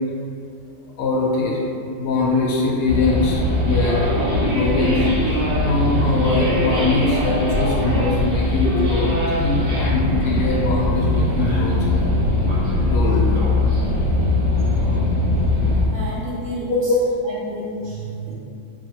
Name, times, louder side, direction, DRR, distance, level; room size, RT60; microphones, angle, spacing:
voice 1, 1.0-1.6 2.0-4.1 4.4-9.1 9.4-12.2 12.8-13.3 16.7-17.0, left 3 dB, 80° left, -3 dB, 1.3 m, -22 dB
sound 1, 2.9-15.9, left 1 dB, 65° right, 1.6 m, -20 dB
voice 2, 15.9-16.7 17.2-18.3, right 1 dB, 50° right, -8 dB, 1.1 m, -31 dB
3.2 x 2.9 x 4.2 m, 2.5 s
omnidirectional pair, 1.7 m